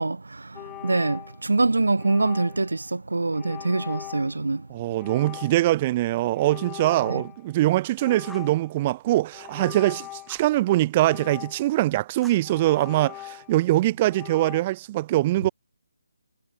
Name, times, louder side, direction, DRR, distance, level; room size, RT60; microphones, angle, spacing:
voice 1, 0.0-4.7 7.1-7.2, right 3 dB, 75° right, 0.8 m, -25 dB
sound 1, 0.5-1.6 2.0-2.8 3.3-4.4 5.0-5.8 6.3-7.6 8.0-8.8 9.3-10.4 11.0-11.9 12.4-13.7 14.1-14.6, left 17 dB, 15° left, 4.7 m, -41 dB
voice 2, 4.7-15.5, right 16 dB, 25° right, 0.9 m, -23 dB
Fire, 8.2-8.6 10.3-10.6 12.2-13.1, right 2 dB, ahead, 3.3 m, -51 dB
figure-of-eight pair, 150°, 0 cm